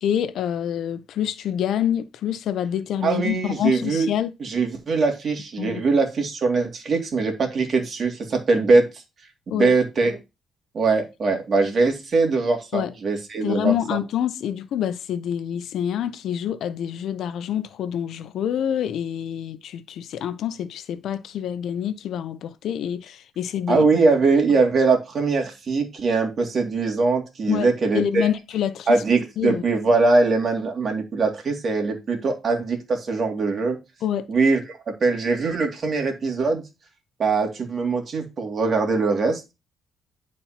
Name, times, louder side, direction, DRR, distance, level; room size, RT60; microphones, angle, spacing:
voice 1, 0.0-4.3 5.6-5.8 9.5-9.7 12.7-12.9 13.4-23.9 27.5-29.0 29.4-29.6 34.0-34.2, left 10 dB, 75° left, 0.6 m, -26 dB
voice 2, 3.0-4.1 4.4-8.9 9.5-10.2 10.7-14.0 23.7-28.3 28.9-33.8 34.3-36.6 37.2-39.4, right 3 dB, 50° right, 2.3 m, -22 dB
11.0 x 4.2 x 2.9 m
cardioid pair, 90°, 0 cm